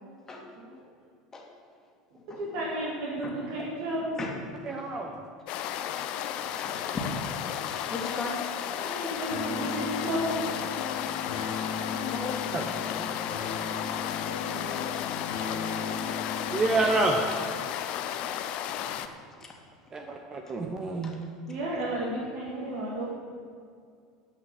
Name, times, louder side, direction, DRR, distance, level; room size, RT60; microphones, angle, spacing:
voice 1, 2.4-4.1 8.8-10.3 14.5-14.9 21.5-23.1, right 1 dB, 55° right, -4 dB, 2.3 m, -33 dB
voice 2, 4.7-5.1 12.5-12.6 16.5-17.2 19.9-21.1, right 3 dB, 30° right, 3 dB, 1.0 m, -27 dB
sound 1, 5.5-19.1, left 10 dB, 55° left, 0.6 m, -33 dB
voice 3, 6.4-7.0 7.3-8.8 11.8-13.5 18.9-19.0 19.4-19.5 21.0-21.4, left 3 dB, 25° left, -1 dB, 2.3 m, -39 dB
sound 2, 9.3-17.3, left 5 dB, 75° left, 1.6 m, -37 dB
10.0 x 5.8 x 8.6 m, 2.2 s
figure-of-eight pair, 75°, 2 cm